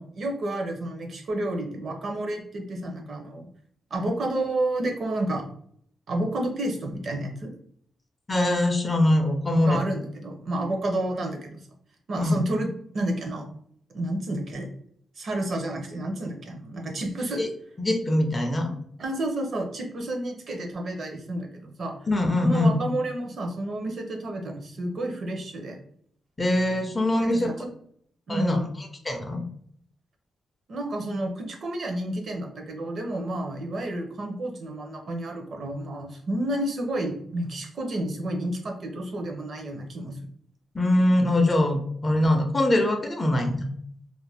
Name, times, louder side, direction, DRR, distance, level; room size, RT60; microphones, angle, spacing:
voice 1, 0.0-3.5 3.9-5.4 6.1-7.5 9.7-11.6 12.1-12.7 12.9-13.5 13.9-14.7 15.2-17.4 19.0-22.0 22.4-25.8 27.2-27.7 28.3-28.7 30.7-40.2, right 1 dB, 50° right, 2 dB, 0.6 m, -30 dB
voice 2, 8.3-9.8 12.2-12.4 17.4-17.5 17.8-18.8 22.1-22.8 26.4-27.5 28.3-28.6 29.0-29.4 40.7-43.7, left 1 dB, 20° left, 4 dB, 0.4 m, -22 dB
2.5 x 2.1 x 3.3 m, 0.64 s
wide cardioid pair, 140°, 0 cm